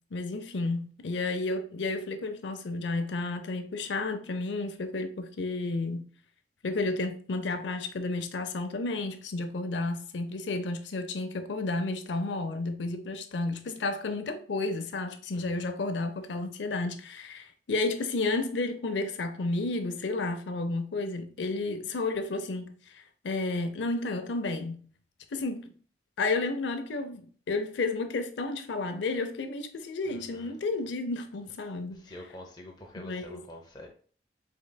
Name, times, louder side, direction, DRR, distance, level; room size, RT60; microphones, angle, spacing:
voice 1, 0.1-6.0 6.6-24.9 25.3-25.7 26.2-32.0 33.0-33.5, left 3 dB, 85° left, 0.6 m, -32 dB
voice 2, 30.1-30.5 32.0-33.9, left 1 dB, 25° left, 0.7 m, -46 dB
5.2 x 3.7 x 2.2 m
head